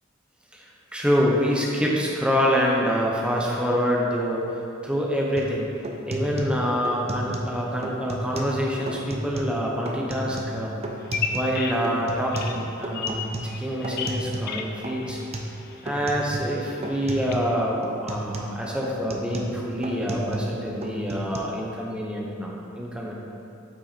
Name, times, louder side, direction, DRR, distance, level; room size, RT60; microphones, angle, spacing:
voice 1, 0.9-5.7 6.1-10.8 11.3-15.2 15.8-23.1, equal, 5° right, -3 dB, 1.0 m, -26 dB
sound 1, 5.4-5.5 5.8-7.6 7.8-8.6 8.9-9.6 9.9-11.6 11.8-14.6 14.8-15.6 15.9-16.6 16.8-17.5 17.8-20.6 20.8-21.4, right 1 dB, 35° right, 0.7 m, -33 dB
Bird vocalization bird call bird song, 11.0-17.3, left 5 dB, 55° left, 0.6 m, -35 dB
8.1 x 5.9 x 4.3 m, 2.6 s
head